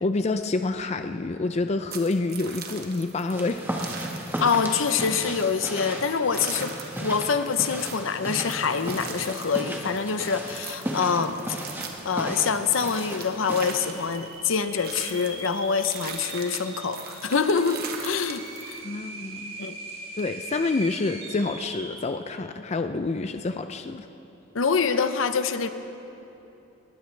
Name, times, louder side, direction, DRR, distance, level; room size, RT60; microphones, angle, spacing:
voice 1, 0.0-3.6 18.8-19.5 20.2-24.1, left 3 dB, 35° left, 8 dB, 0.4 m, -28 dB
sound 1, 1.9-18.8, right 6 dB, 50° right, 1.4 m, -41 dB
sound 2, 3.3-14.0, right 1 dB, 10° right, 1.4 m, -35 dB
voice 2, 4.4-11.6 12.0-18.8 19.6-19.7 24.5-25.7, left 5 dB, 70° left, 10 dB, 0.7 m, -25 dB
sound 3, 13.5-22.1, right 3 dB, 75° right, 2.9 m, -41 dB
19.5 x 19.0 x 3.3 m, 3.0 s
head